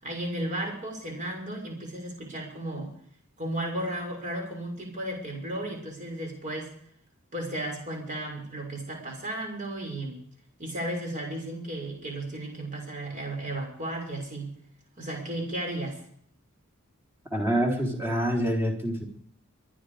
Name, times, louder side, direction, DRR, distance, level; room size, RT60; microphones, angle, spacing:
voice 1, 0.0-2.9 3.4-6.7 7.3-10.2 10.6-14.5 15.0-16.0, right 1 dB, 35° right, 2 dB, 6.4 m, -34 dB
voice 2, 17.3-19.0, equal, 10° right, 0 dB, 4.0 m, -26 dB
24.0 x 10.5 x 5.1 m, 0.63 s
head